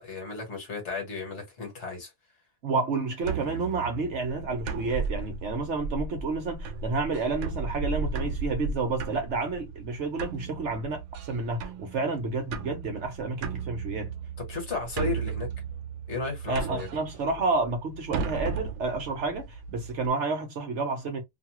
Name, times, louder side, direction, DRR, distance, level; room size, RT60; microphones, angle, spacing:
voice 1, 0.0-2.1 14.4-15.5 16.1-16.9, left 4 dB, 55° left, 1.5 m, -34 dB
voice 2, 2.6-11.0 11.3-14.1 16.5-21.2, right 3 dB, 60° right, 0.9 m, -30 dB
sound 1, 3.2-20.1, right 5 dB, 80° right, 1.0 m, -35 dB
2.7 x 2.3 x 2.8 m
omnidirectional pair, 1.5 m